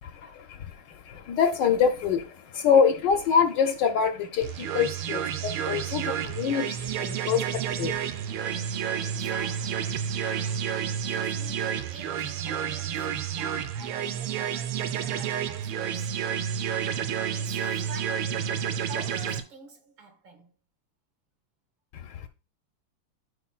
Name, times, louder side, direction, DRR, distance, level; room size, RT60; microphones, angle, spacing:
voice 1, 0.0-9.1 10.0-10.1 21.9-22.3, left 6 dB, 70° left, 1.1 m, -26 dB
sound 1, 4.4-19.4, right 8 dB, 85° right, 1.5 m, -30 dB
voice 2, 9.0-9.9 10.3-13.1 13.4-16.3 17.3-20.5, right 3 dB, 65° right, 2.1 m, -47 dB
13.5 x 4.9 x 2.4 m
omnidirectional pair, 2.3 m